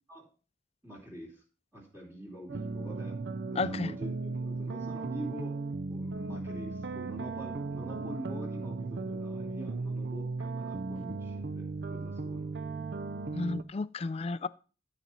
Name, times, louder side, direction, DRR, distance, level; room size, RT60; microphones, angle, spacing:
voice 1, 0.8-1.4 1.7-3.2 3.5-5.6 5.9-12.5, right 1 dB, 15° right, -3 dB, 2.7 m, -45 dB
sound 1, 2.5-13.6, right 3 dB, 65° right, 0.5 m, -36 dB
voice 2, 3.6-3.9 13.3-14.5, left 3 dB, 35° left, 16 dB, 0.4 m, -32 dB
12.0 x 4.1 x 5.7 m, 0.36 s
head